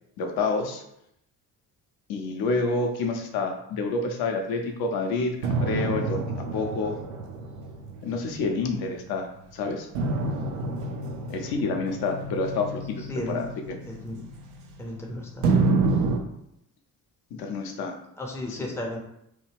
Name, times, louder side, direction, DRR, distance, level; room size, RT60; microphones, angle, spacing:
voice 1, 0.2-0.8 2.1-6.2 6.5-7.0 8.0-9.3 9.5-9.9 11.3-13.5 17.4-17.9 18.5-18.7, left 3 dB, 50° left, 4 dB, 0.7 m, -28 dB
sound 1, 5.4-9.1 9.9-15.0 15.4-16.2, right 3 dB, 65° right, 0.6 m, -28 dB
voice 2, 13.1-13.4 13.9-14.3 14.8-15.5 18.2-19.0, left 1 dB, 5° left, -1 dB, 0.6 m, -34 dB
3.0 x 2.2 x 3.4 m, 0.78 s
figure-of-eight pair, 45°, 49 cm